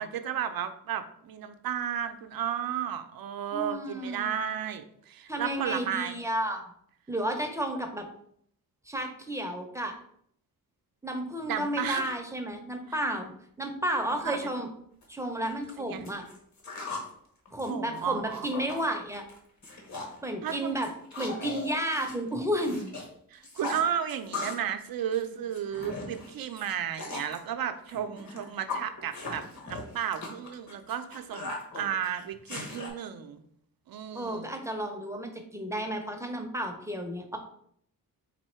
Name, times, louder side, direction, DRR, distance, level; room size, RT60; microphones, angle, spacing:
voice 1, 0.0-6.2 11.5-12.1 14.2-14.5 15.8-16.0 17.7-18.5 20.4-20.8 23.3-33.4 33.9-34.5, right 9 dB, 70° right, 9 dB, 0.5 m, -33 dB
voice 2, 3.5-4.4 5.3-6.7 7.1-8.1 8.9-9.9 11.0-13.3 13.6-14.7 15.1-16.2 17.5-19.2 20.2-20.9 21.2-22.8 34.1-37.4, right 1 dB, 10° right, 4 dB, 0.6 m, -32 dB
sound 1, 15.0-15.1 15.5-17.1 17.5-18.8 19.1-19.4 19.6-20.2 20.5-23.1 23.3-24.7 25.0-27.4 27.9-32.9, left 3 dB, 50° left, 1.1 m, -39 dB
4.2 x 2.7 x 4.3 m, 0.67 s
wide cardioid pair, 125°, 36 cm